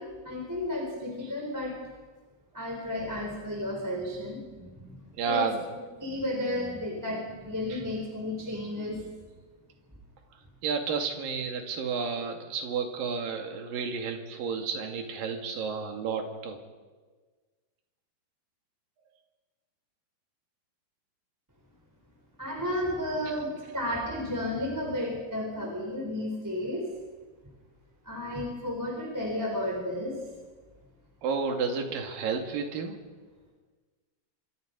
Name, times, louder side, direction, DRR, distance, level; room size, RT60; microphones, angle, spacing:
voice 1, 0.0-1.8 2.5-5.4 6.0-9.0 22.4-26.9 28.1-30.2, left 1 dB, 5° right, -1 dB, 3.5 m, -33 dB
voice 2, 5.2-5.6 7.7-7.8 10.6-16.6 31.2-33.0, right 5 dB, 60° right, 4 dB, 3.7 m, -31 dB
27.5 x 25.5 x 5.3 m, 1.4 s
omnidirectional pair, 4.9 m